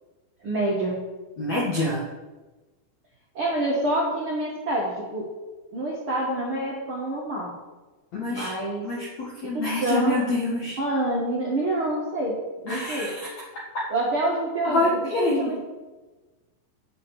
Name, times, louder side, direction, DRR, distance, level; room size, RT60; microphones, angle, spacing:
voice 1, 0.4-1.0 3.3-5.3 5.7-7.5 8.3-8.9 9.5-10.2 10.8-13.1 13.9-14.9 15.1-15.6, right 1 dB, 75° right, -4 dB, 1.2 m, -27 dB
voice 2, 1.4-2.0 8.1-8.5 8.8-10.8 12.7-13.3 14.6-15.6, left 2 dB, 65° left, -5 dB, 1.7 m, -26 dB
9.2 x 6.5 x 8.0 m, 1.2 s
omnidirectional pair, 5.8 m